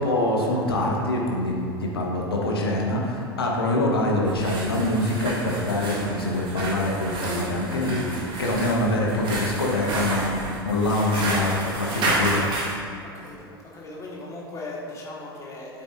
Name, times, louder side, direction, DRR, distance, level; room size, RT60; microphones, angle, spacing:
voice 1, 0.0-12.4, left 1 dB, 70° left, -1 dB, 1.2 m, -24 dB
sound 1, 4.2-12.8, right 2 dB, 40° right, 1.7 m, -30 dB
voice 2, 13.0-15.8, left 2 dB, 25° left, -3 dB, 1.7 m, -38 dB
8.6 x 8.4 x 2.6 m, 2.4 s
figure-of-eight pair, 80°, 13 cm